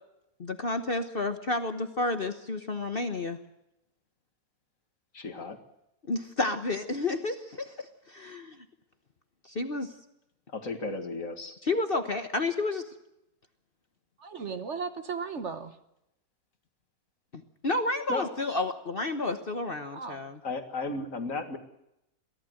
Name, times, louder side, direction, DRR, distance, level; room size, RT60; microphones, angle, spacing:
voice 1, 0.4-3.4 6.1-8.5 9.4-9.9 11.6-12.9 17.3-20.4, left 2 dB, 40° left, 8 dB, 1.3 m, -31 dB
voice 2, 5.1-5.6 10.5-11.6 18.1-18.3 20.4-21.6, left 3 dB, 55° left, 7 dB, 2.4 m, -34 dB
voice 3, 14.2-15.8 19.9-20.3, right 5 dB, 50° right, 10 dB, 1.4 m, -36 dB
23.0 x 15.5 x 7.9 m, 0.85 s
omnidirectional pair, 1.7 m